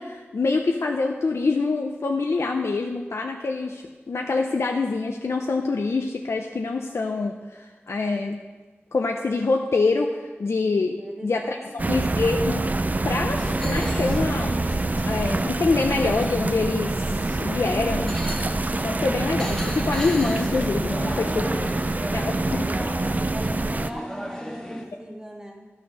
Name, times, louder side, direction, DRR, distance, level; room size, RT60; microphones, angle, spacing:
voice 1, 0.0-8.4 8.9-12.7 13.0-13.4 13.6-14.6 15.0-18.2 18.8-21.5 22.1-22.6, left 3 dB, 85° left, 2 dB, 0.6 m, -25 dB
voice 2, 11.0-11.3 11.6-12.0 21.1-22.9 23.3-25.7, right 1 dB, 15° right, -1 dB, 1.9 m, -40 dB
sound 1, 11.8-23.9, right 2 dB, 35° right, 0.4 m, -26 dB
sound 2, 13.3-24.8, equal, 10° left, 1.5 m, -35 dB
11.0 x 6.3 x 6.2 m, 1.3 s
wide cardioid pair, 65°, 5 cm